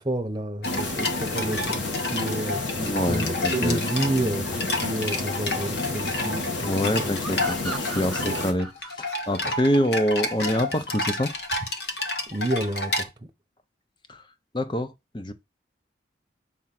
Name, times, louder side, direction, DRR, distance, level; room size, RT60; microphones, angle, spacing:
voice 1, 0.0-3.3 3.5-7.1 8.2-8.4 12.3-13.1, right 1 dB, 25° right, 0.9 m, -30 dB
sound 1, 0.6-8.5, left 2 dB, 90° left, 1.7 m, -30 dB
sound 2, 0.6-13.0, left 2 dB, 60° left, 1.2 m, -31 dB
voice 2, 2.8-3.8 6.7-11.3 14.1-14.2 14.5-15.3, equal, 25° left, 0.7 m, -26 dB
sound 3, 7.2-10.6, right 2 dB, ahead, 1.0 m, -38 dB
7.4 x 3.7 x 5.9 m
head